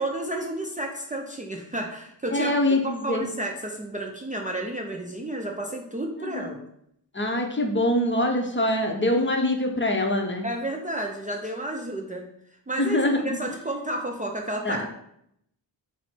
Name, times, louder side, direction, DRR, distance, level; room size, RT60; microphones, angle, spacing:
voice 1, 0.0-6.6 10.4-12.3 12.7-14.9, right 1 dB, 20° right, 1 dB, 0.5 m, -31 dB
voice 2, 2.3-3.3 6.2-6.5 7.1-10.4 12.8-13.4 14.6-14.9, left 1 dB, 25° left, 3 dB, 0.6 m, -24 dB
4.2 x 2.1 x 4.3 m, 0.73 s
cardioid pair, 55°, 45 cm